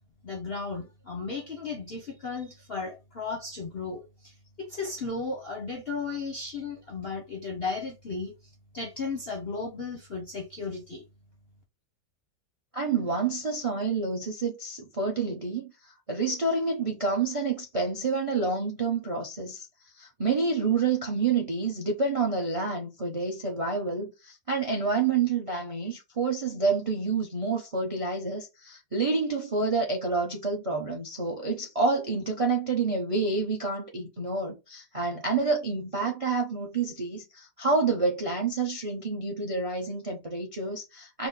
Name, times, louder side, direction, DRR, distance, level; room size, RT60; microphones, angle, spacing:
voice 1, 0.2-8.3 8.7-11.0, left 4 dB, 55° left, 0.7 m, -35 dB
voice 2, 12.7-19.7 20.0-41.3, right 4 dB, 45° right, 0.4 m, -28 dB
4.5 x 2.1 x 3.9 m
omnidirectional pair, 2.0 m